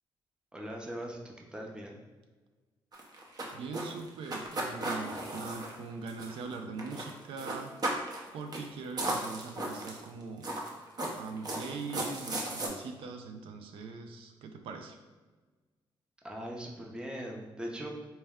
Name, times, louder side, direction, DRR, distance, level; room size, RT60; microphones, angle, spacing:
voice 1, 0.5-1.2 1.5-2.0 16.2-17.9, equal, 10° right, -1 dB, 0.6 m, -40 dB
sound 1, 2.9-6.5 6.8-7.1 7.4-8.2 8.5-8.7 9.0-10.0 10.4-12.7, right 2 dB, 45° right, 0.7 m, -35 dB
voice 2, 3.5-7.8 8.3-10.5 11.2-15.0, right 4 dB, 90° right, 5 dB, 0.4 m, -41 dB
4.3 x 2.1 x 3.5 m, 1.3 s
cardioid pair, 115°, 9 cm